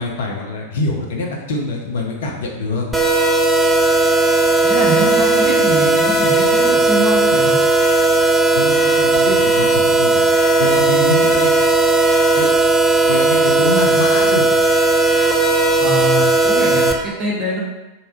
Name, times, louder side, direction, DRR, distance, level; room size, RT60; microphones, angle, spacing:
voice 1, 0.0-2.8 8.5-10.3 10.6-11.5 12.4-12.5 13.1-14.5, left 2 dB, 60° left, 0 dB, 0.6 m, -24 dB
sound 1, 2.9-16.9, right 3 dB, 5° right, 0.4 m, -15 dB
voice 2, 4.6-7.6 15.8-17.6, right 2 dB, 30° right, -5 dB, 0.9 m, -23 dB
3.4 x 2.8 x 3.0 m, 1.0 s
figure-of-eight pair, 90°, 0 cm